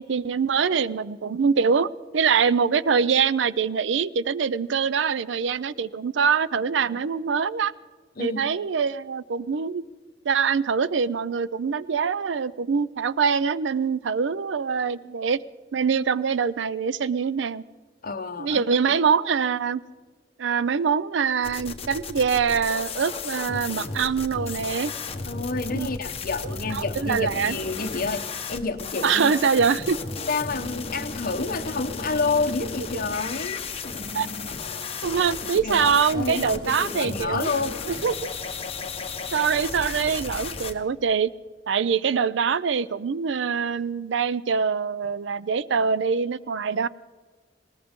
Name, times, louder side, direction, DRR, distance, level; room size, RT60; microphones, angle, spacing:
voice 1, 0.0-7.7 8.2-9.8 10.2-15.4 15.7-17.6 18.4-19.8 20.4-24.9 25.7-25.9 26.7-27.6 29.0-30.0 32.6-32.7 34.1-34.3 35.0-37.5 37.9-38.3 39.3-41.3 41.7-46.9, right 6 dB, 70° right, 18 dB, 0.5 m, -24 dB
voice 2, 8.2-8.5 18.0-18.6 25.3-29.4 30.3-33.6 35.6-37.8, left 4 dB, 50° left, 9 dB, 0.9 m, -29 dB
sound 1, 21.4-40.7, left 4 dB, 35° left, 1.2 m, -34 dB
20.0 x 19.0 x 3.7 m, 1.4 s
head